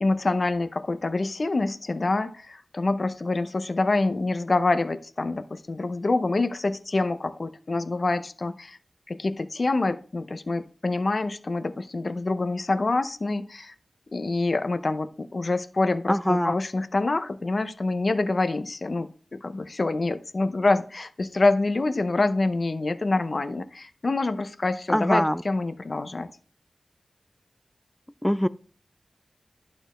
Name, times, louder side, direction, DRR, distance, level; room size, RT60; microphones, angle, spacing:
voice 1, 0.0-8.8 9.1-13.7 14.1-26.3, left 2 dB, 50° left, 0.7 m, -26 dB
voice 2, 16.1-16.5 24.9-25.4 28.2-28.5, equal, 5° left, 0.4 m, -22 dB
11.5 x 4.4 x 3.0 m
wide cardioid pair, 70°, 0 cm